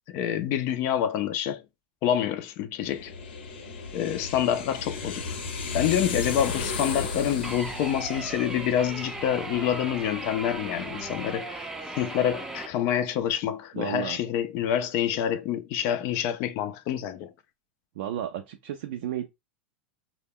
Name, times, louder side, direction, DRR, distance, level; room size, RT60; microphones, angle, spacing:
voice 1, 0.1-1.6 2.0-3.1 3.9-5.4 5.7-11.6 12.0-17.3, left 10 dB, 50° left, 0.4 m, -27 dB
sound 1, 2.8-11.4, left 4 dB, 80° left, 0.7 m, -35 dB
sound 2, 7.4-12.7, right 2 dB, 10° right, 0.5 m, -37 dB
voice 2, 13.7-14.2 18.0-19.3, right 11 dB, 70° right, 0.4 m, -33 dB
2.1 x 2.1 x 3.5 m
hypercardioid pair, 115°, 6 cm